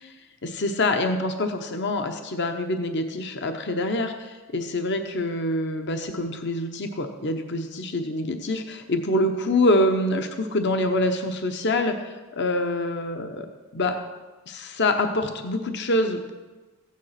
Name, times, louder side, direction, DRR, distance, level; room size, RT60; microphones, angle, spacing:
voice 1, 0.4-13.5 13.7-14.0 14.5-16.3, left 1 dB, 50° left, 6 dB, 0.9 m, -25 dB
15.0 x 9.5 x 5.8 m, 1.3 s
head